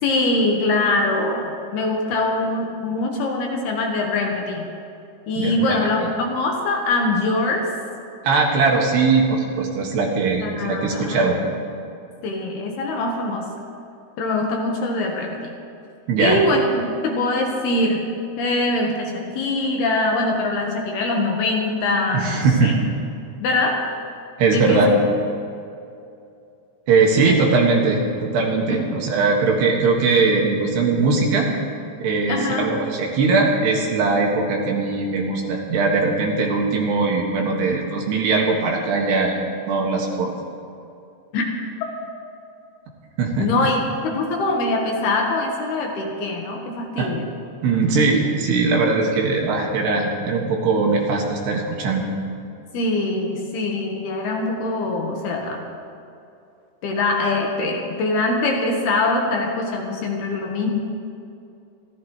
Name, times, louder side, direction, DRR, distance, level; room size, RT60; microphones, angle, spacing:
voice 1, 0.0-4.7 5.3-7.7 10.4-11.2 12.2-13.5 14.2-15.5 16.2-18.1 18.4-22.7 23.4-23.9 24.5-24.9 27.2-27.4 28.7-28.9 32.3-32.8 41.3-41.5 43.4-47.3 52.7-55.7 56.8-60.8, left 2 dB, 65° left, 1 dB, 3.0 m, -23 dB
voice 2, 5.4-6.1 8.2-11.4 16.1-16.4 22.1-22.8 24.4-24.9 26.9-31.5 32.0-39.4 39.7-40.3 43.2-43.5 47.0-47.1 47.6-52.1, right 4 dB, 70° right, 0 dB, 3.6 m, -20 dB
27.5 x 14.5 x 3.2 m, 2.6 s
omnidirectional pair, 5.3 m